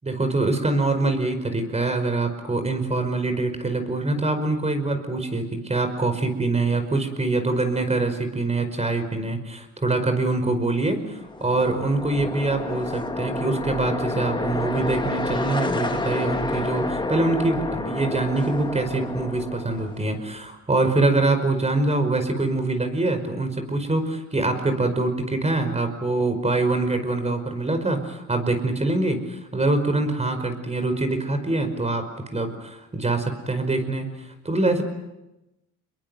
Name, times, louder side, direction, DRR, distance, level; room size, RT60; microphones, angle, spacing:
voice 1, 0.0-32.0 32.3-34.1 34.4-34.8, right 2 dB, 20° right, 7 dB, 5.2 m, -24 dB
sound 1, 11.2-20.2, left 2 dB, 15° left, 2.4 m, -29 dB
27.5 x 22.0 x 8.0 m, 0.97 s
cardioid pair, 90°, 30 cm